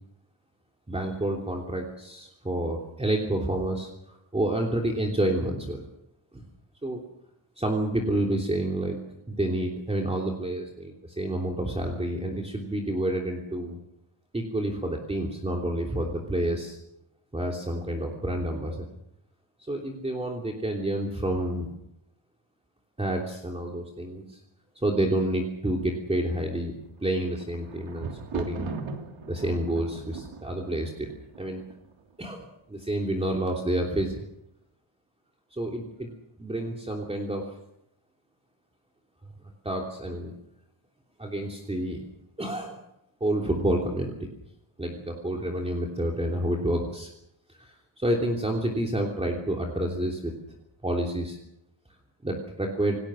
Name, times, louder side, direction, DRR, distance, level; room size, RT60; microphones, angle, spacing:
voice 1, 0.9-5.8 6.3-6.4 6.8-7.0 7.6-9.0 9.3-13.8 14.3-16.8 17.3-18.8 19.7-21.7 23.0-24.4 24.7-26.7 27.0-28.7 29.3-31.1 31.4-31.6 32.2-34.2 35.5-36.1 36.4-37.6 39.6-40.3 41.2-42.0 42.4-42.8 43.2-44.1 44.8-47.1 47.6-50.3 50.8-51.4 52.2-53.0, right 1 dB, 15° right, 0 dB, 3.1 m, -29 dB
Thunder, 27.0-32.1 32.8-33.4 33.6-33.7, right 5 dB, 80° right, 3.1 m, -39 dB
28.5 x 19.0 x 6.4 m, 0.80 s
wide cardioid pair, 165°, 47 cm